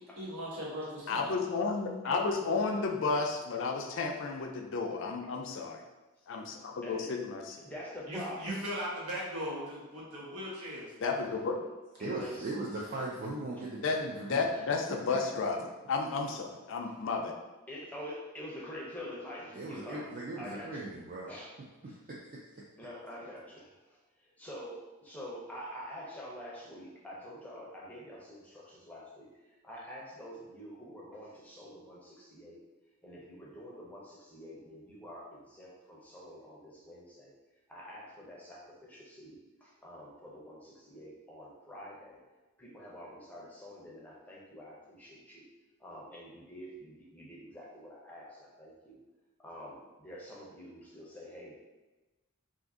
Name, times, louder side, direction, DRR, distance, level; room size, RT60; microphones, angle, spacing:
voice 1, 0.2-1.4 2.2-2.3 8.1-10.9, equal, 80° right, -6 dB, 1.1 m, -38 dB
voice 2, 1.1-5.8 6.3-7.4 11.0-11.6 13.8-15.6 15.9-17.3, left 4 dB, 60° left, 3 dB, 0.4 m, -32 dB
voice 3, 7.6-8.6 12.0-12.5 14.5-14.6 16.8-16.9 17.7-20.1 20.4-20.8 21.3-21.5 21.8-22.0 22.8-32.6 33.0-37.3 37.7-42.2 42.6-45.4 45.8-49.0 49.4-51.6, equal, 5° left, -5 dB, 0.6 m, -46 dB
voice 4, 12.0-14.4 15.1-15.2 19.5-21.3, right 2 dB, 40° right, -4 dB, 0.4 m, -38 dB
2.6 x 2.5 x 3.7 m, 1.1 s
head